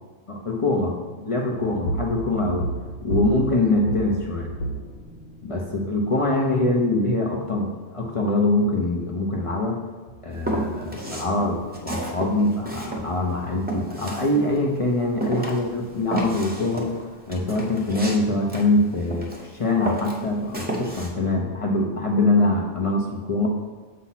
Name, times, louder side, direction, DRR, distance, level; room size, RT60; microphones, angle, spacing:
voice 1, 0.3-2.7 3.0-4.5 5.4-9.8 10.2-16.9 17.3-19.3 19.6-23.5, left 2 dB, 40° left, 0 dB, 0.5 m, -23 dB
sound 1, 1.6-5.6, right 2 dB, 75° left, 1.0 m, -31 dB
Walk footsteps, 10.4-11.3 11.7-14.8 15.2-19.5 19.8-21.1, right 1 dB, 10° right, 0.7 m, -31 dB
7.1 x 2.8 x 5.7 m, 1.4 s
omnidirectional pair, 1.3 m